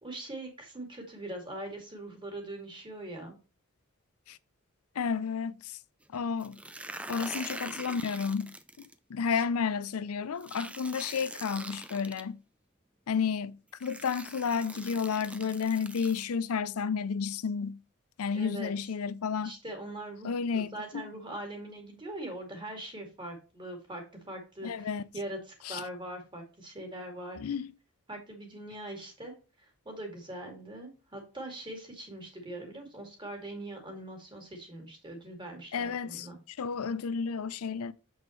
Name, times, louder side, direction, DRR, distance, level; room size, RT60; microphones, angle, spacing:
voice 1, 0.0-3.4 9.3-9.4 18.3-18.7 19.4-20.3 20.5-24.9 25.1-27.4 28.1-29.3 29.9-36.4, right 1 dB, 20° right, 2.4 m, -42 dB
voice 2, 5.0-5.8 6.1-6.6 7.1-12.4 13.1-17.8 18.2-19.5 20.2-21.0 24.6-25.1 25.6-25.8 27.4-27.7 35.7-37.9, left 6 dB, 85° left, 0.5 m, -32 dB
sound 1, 6.4-8.9 10.4-12.2 13.2-13.3 13.8-16.2, right 1 dB, 5° right, 0.4 m, -43 dB
7.1 x 6.2 x 3.1 m
head